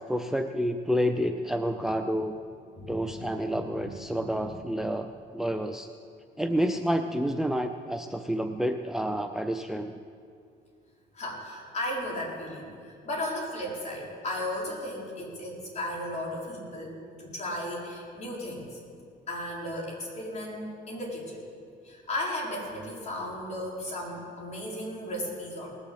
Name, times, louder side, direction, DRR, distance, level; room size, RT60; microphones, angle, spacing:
voice 1, 0.0-2.4 2.9-5.9 6.4-10.0, equal, 5° right, 7 dB, 0.5 m, -29 dB
voice 2, 2.7-3.6 4.1-4.5 11.1-16.9 17.2-18.8 19.3-21.4 21.8-25.7, left 1 dB, 40° left, -3 dB, 4.4 m, -35 dB
19.0 x 7.2 x 7.8 m, 2.3 s
cardioid pair, 110°, 17 cm